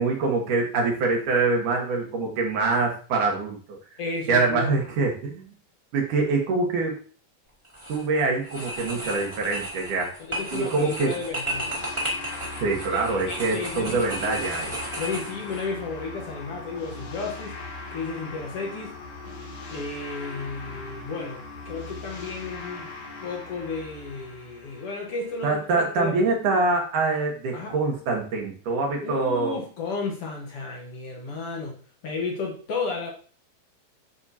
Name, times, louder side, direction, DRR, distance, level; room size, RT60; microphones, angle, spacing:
voice 1, 0.0-3.8 4.3-5.4 5.9-7.0 7.9-10.1 10.5-11.2 12.6-14.7 25.4-29.6, right 3 dB, 65° right, 1 dB, 2.5 m, -25 dB
voice 2, 4.0-4.7 10.2-12.0 12.7-14.3 15.0-17.6 17.9-19.0 19.7-22.9 23.2-26.6 27.5-27.7 29.0-33.1, left 4 dB, 65° left, 0 dB, 1.5 m, -33 dB
sound 1, 7.6-8.0 8.4-15.6, equal, 10° right, 1.7 m, -34 dB
sound 2, 11.4-25.8, left 3 dB, 45° left, 2.4 m, -40 dB
9.8 x 6.2 x 2.8 m, 0.42 s
omnidirectional pair, 4.5 m